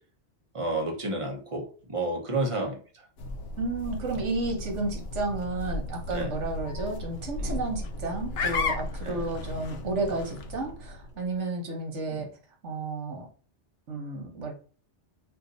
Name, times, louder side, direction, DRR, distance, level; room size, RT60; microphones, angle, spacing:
voice 1, 0.5-2.8 6.1-6.3 7.4-7.6 9.0-9.2 12.1-12.2, right 2 dB, 30° right, 0 dB, 0.8 m, -31 dB
sound 1, 3.2-11.2, left 3 dB, 65° left, 0.8 m, -35 dB
voice 2, 3.6-12.3 12.6-13.3 13.9-14.5, right 2 dB, 85° right, 2 dB, 1.3 m, -32 dB
2.6 x 2.6 x 3.9 m, 0.39 s
omnidirectional pair, 1.2 m